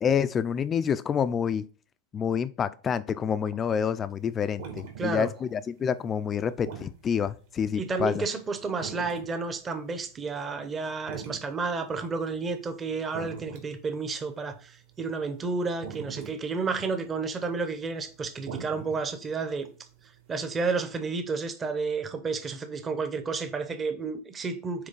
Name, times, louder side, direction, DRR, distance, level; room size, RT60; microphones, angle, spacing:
voice 1, 0.0-1.6 2.1-8.2, left 7 dB, 20° left, 0.3 m, -28 dB
sound 1, 4.1-10.1 10.5-20.6, right 7 dB, 65° right, 2.0 m, -44 dB
voice 2, 5.0-5.3 7.7-19.7 20.3-24.9, right 4 dB, 15° right, 0.7 m, -31 dB
7.8 x 3.2 x 4.0 m
supercardioid pair, 165°, 0 cm